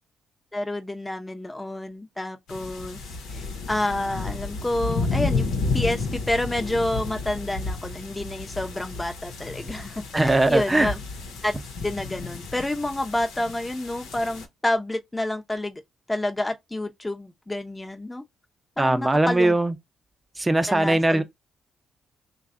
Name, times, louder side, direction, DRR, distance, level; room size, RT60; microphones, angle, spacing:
voice 1, 0.5-3.0 3.3-5.5 5.7-11.0 11.4-11.5 11.8-15.8 16.1-18.2 18.8-19.5 20.7-21.2, left 1 dB, 15° left, 0.8 m, -29 dB
sound 1, 2.5-14.5, left 3 dB, 80° left, 1.0 m, -32 dB
voice 2, 10.1-10.9 18.8-19.7 20.4-21.2, right 2 dB, 20° right, 0.8 m, -20 dB
3.1 x 2.4 x 3.7 m
hypercardioid pair, 50°, 0 cm